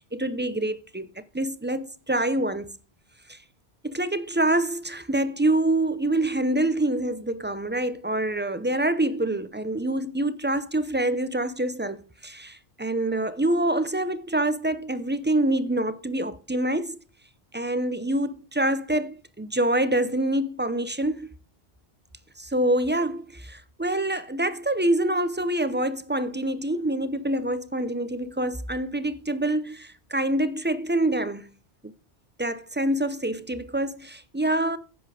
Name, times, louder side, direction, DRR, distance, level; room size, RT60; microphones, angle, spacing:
voice 1, 0.0-2.7 3.3-3.4 3.8-17.0 17.5-21.3 22.4-31.5 31.8-31.9 32.4-34.8, right 1 dB, 15° right, 0.4 m, -26 dB
10.5 x 8.0 x 4.8 m
omnidirectional pair, 1.1 m